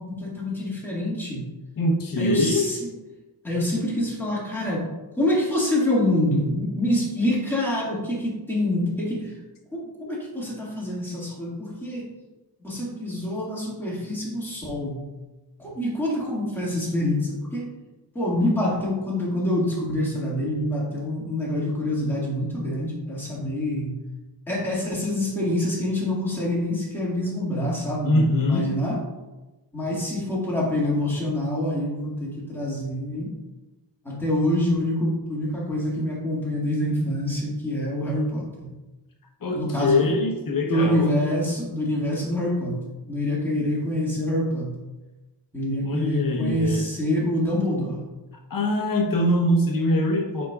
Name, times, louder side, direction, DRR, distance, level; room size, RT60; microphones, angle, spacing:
voice 1, 0.0-1.5 2.2-2.9 3.4-4.9 5.2-9.4 9.7-12.1 12.6-15.1 15.6-17.7 18.1-24.0 24.5-29.0 29.7-33.3 34.0-38.7 39.5-40.1 40.7-44.8 45.5-48.0, left 1 dB, 5° left, -6 dB, 1.9 m, -26 dB
voice 2, 1.8-2.7 28.0-28.7 39.4-41.1 45.8-46.9 48.5-50.5, left 1 dB, 50° left, 2 dB, 1.0 m, -23 dB
8.1 x 5.2 x 2.4 m, 1.1 s
wide cardioid pair, 150°, 42 cm